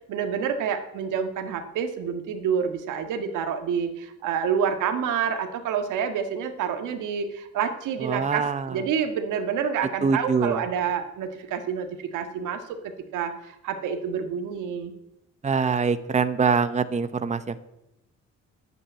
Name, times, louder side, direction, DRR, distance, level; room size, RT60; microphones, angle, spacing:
voice 1, 0.1-14.9, right 7 dB, 90° right, 7 dB, 1.7 m, -28 dB
voice 2, 8.0-8.8 10.0-10.6 15.4-17.6, right 5 dB, 25° right, 12 dB, 0.9 m, -24 dB
11.0 x 8.7 x 9.1 m, 0.89 s
cardioid pair, 90°, 30 cm